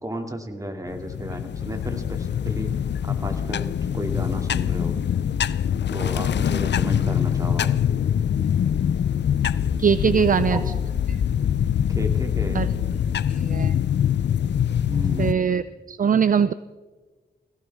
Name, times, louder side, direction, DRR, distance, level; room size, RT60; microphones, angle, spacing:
voice 1, 0.0-2.7 3.0-5.0 5.9-7.7 10.0-10.8 11.9-12.6 14.9-15.6, right 1 dB, 15° right, 4 dB, 2.5 m, -33 dB
sound 1, 0.9-15.3, left 9 dB, 65° left, 0.5 m, -24 dB
voice 2, 9.8-10.6 11.1-11.2 12.5-12.7 13.3-13.7 15.2-16.5, right 7 dB, 45° right, 15 dB, 0.5 m, -21 dB
21.0 x 17.0 x 3.6 m, 1.3 s
cardioid pair, 65°, 19 cm